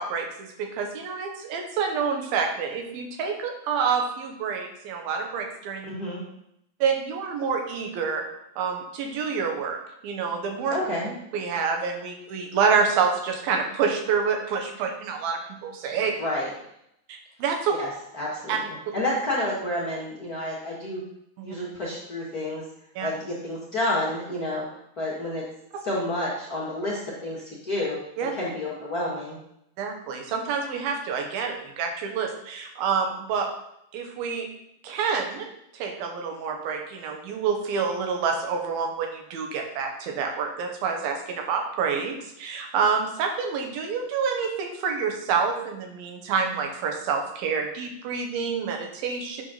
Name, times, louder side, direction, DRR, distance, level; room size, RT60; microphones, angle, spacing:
voice 1, 0.0-5.9 6.8-8.2 8.6-9.8 10.0-10.8 11.3-16.1 17.1-17.8 18.5-18.6 21.4-21.5 23.0-23.1 28.2-28.3 29.8-33.5 33.9-34.5 34.8-35.5 35.7-49.4, right 6 dB, 75° right, 3 dB, 2.9 m, -27 dB
voice 2, 5.8-6.2 10.7-11.1 16.2-16.5 17.8-17.9 18.1-21.0 21.4-22.6 23.0-24.6 25.0-25.4 25.8-28.0 28.3-29.4, left 1 dB, 40° left, -7 dB, 1.4 m, -29 dB
8.5 x 4.6 x 5.7 m, 0.77 s
omnidirectional pair, 4.4 m